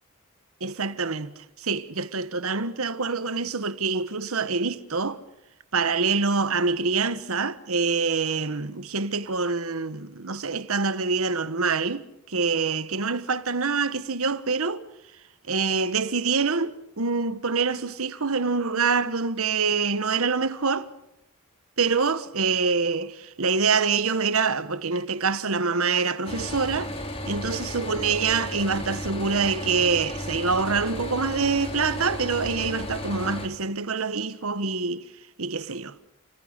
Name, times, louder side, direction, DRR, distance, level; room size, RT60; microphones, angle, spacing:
voice 1, 0.6-5.2 5.7-14.9 15.5-20.9 21.8-26.9 27.3-35.1 35.4-35.9, right 4 dB, 75° right, 1.3 m, -25 dB
sound 1, 26.2-33.5, left 1 dB, 25° left, 2.7 m, -34 dB
29.0 x 19.0 x 6.6 m
head